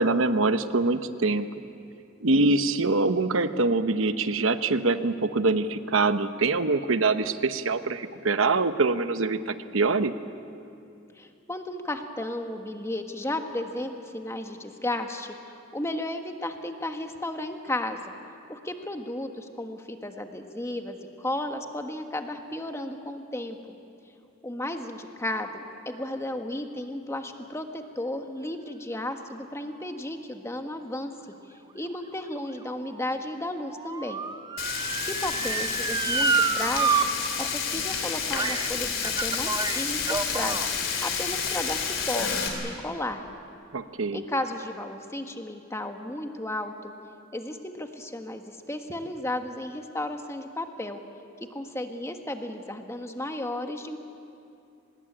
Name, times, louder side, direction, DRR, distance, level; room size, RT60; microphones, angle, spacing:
voice 1, 0.0-1.5 2.2-10.1 43.7-44.2, right 3 dB, 75° right, 11 dB, 1.0 m, -24 dB
voice 2, 11.2-15.3 15.7-18.1 18.5-23.8 24.4-31.1 31.7-34.2 35.0-37.1 37.4-40.6 41.0-43.2 44.1-46.9 47.3-51.0 51.5-54.0, left 1 dB, 15° left, 5 dB, 1.5 m, -34 dB
Motor vehicle (road) / Siren, 31.9-37.1 37.4-37.5 38.3-38.7 39.0-40.7 41.4-41.5, right 4 dB, 20° right, 0.7 m, -28 dB
Frying (food), 34.6-42.5, left 6 dB, 70° left, 3.6 m, -30 dB
24.5 x 20.5 x 8.8 m, 2.6 s
head